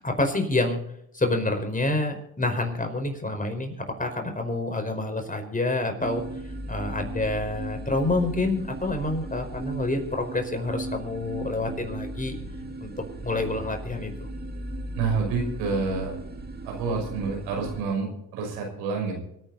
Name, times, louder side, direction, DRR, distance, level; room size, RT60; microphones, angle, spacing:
voice 1, 0.0-0.8 1.1-3.7 4.0-6.2 6.7-12.3 12.8-12.9 13.2-14.3, left 2 dB, 20° left, 5 dB, 5.0 m, -27 dB
sound 1, 6.0-17.8, right 1 dB, 25° right, 2.5 m, -37 dB
voice 2, 15.0-16.1 16.6-19.2, right 4 dB, 90° right, 1 dB, 5.9 m, -28 dB
25.0 x 9.8 x 4.2 m, 0.76 s
supercardioid pair, 70°, 41 cm